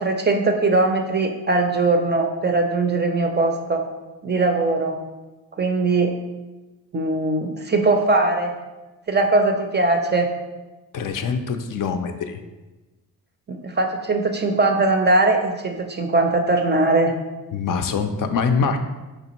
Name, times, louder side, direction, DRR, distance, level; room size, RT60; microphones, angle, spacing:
voice 1, 0.0-3.8 4.2-5.0 5.6-6.1 6.9-8.5 9.1-10.3 13.5-17.1, right 2 dB, 25° right, 4 dB, 0.4 m, -20 dB
voice 2, 10.9-12.4 17.5-18.8, left 5 dB, 55° left, 7 dB, 0.4 m, -24 dB
4.9 x 3.3 x 2.9 m, 1.1 s
cardioid pair, 90°, 40 cm